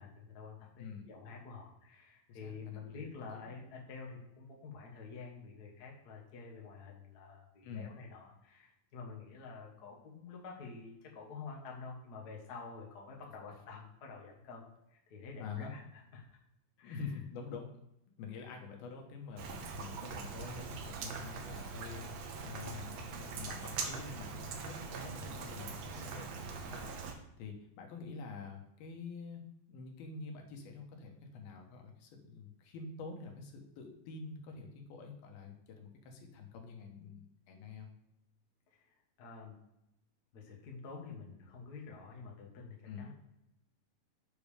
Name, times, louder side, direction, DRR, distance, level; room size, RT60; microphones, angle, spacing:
voice 1, 0.0-16.2 16.8-17.1 38.7-39.6 40.3-43.1, left 5 dB, 65° left, -1 dB, 0.9 m, -49 dB
voice 2, 2.3-3.0 3.3-3.5 7.6-7.9 15.4-15.7 16.8-17.7 18.2-37.9 42.9-43.1, left 5 dB, 90° left, 2 dB, 3.1 m, -47 dB
Rain, 19.4-27.1, right 5 dB, 80° right, 1.5 m, -42 dB
7.7 x 5.2 x 5.0 m, 0.86 s
omnidirectional pair, 4.2 m